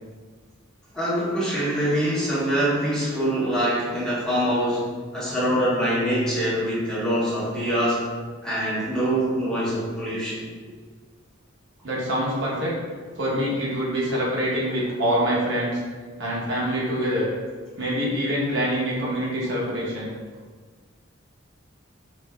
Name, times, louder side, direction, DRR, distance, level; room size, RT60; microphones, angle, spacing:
voice 1, 0.9-4.9 5.1-8.0 8.4-10.4, equal, 5° left, -10 dB, 1.1 m, -24 dB
voice 2, 11.8-12.7 13.1-15.8 16.2-17.3 17.8-20.1, equal, 65° right, -6 dB, 0.9 m, -25 dB
5.0 x 2.6 x 2.2 m, 1.5 s
head